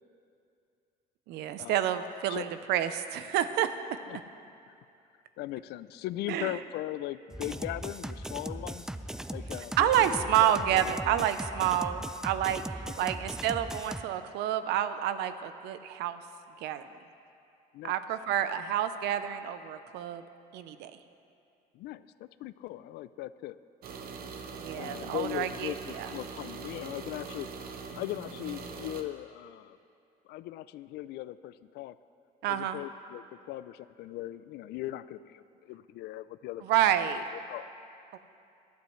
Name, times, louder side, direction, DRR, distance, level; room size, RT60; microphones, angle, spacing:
voice 1, 1.3-3.7 4.1-4.2 6.3-6.6 9.8-16.2 16.6-16.9 17.8-20.2 20.5-20.9 24.5-26.1 32.4-32.8 36.6-37.2 38.1-38.2, right 11 dB, 85° right, 11 dB, 0.6 m, -29 dB
voice 2, 5.4-8.9 9.3-11.3 13.0-13.1 17.7-18.0 21.7-23.6 24.7-27.5 27.9-29.8 30.3-32.0 32.5-37.0 37.3-37.7, left 15 dB, 75° left, 15 dB, 0.4 m, -39 dB
sound 1, 7.3-14.0, right 1 dB, 5° right, 0.3 m, -39 dB
sound 2, 23.8-29.0, right 4 dB, 60° right, 1.0 m, -42 dB
18.5 x 11.5 x 3.2 m, 2.5 s
cardioid pair, 110°, 17 cm